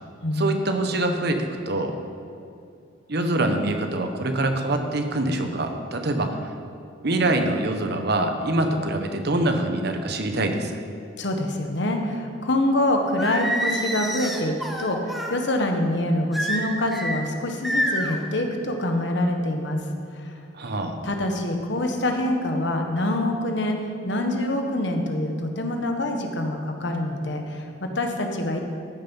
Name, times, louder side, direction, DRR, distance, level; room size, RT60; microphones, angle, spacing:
voice 1, 0.3-2.0 3.1-6.5 7.0-10.8 20.5-21.0, right 2 dB, 60° right, 6 dB, 1.1 m, -24 dB
voice 2, 11.2-19.8 20.1-20.4 21.0-28.6, left 1 dB, 65° left, 4 dB, 1.3 m, -25 dB
Singing, 13.2-15.3 16.3-17.2 17.6-18.2, equal, ahead, 1.0 m, -27 dB
14.0 x 7.0 x 5.6 m, 2.6 s
head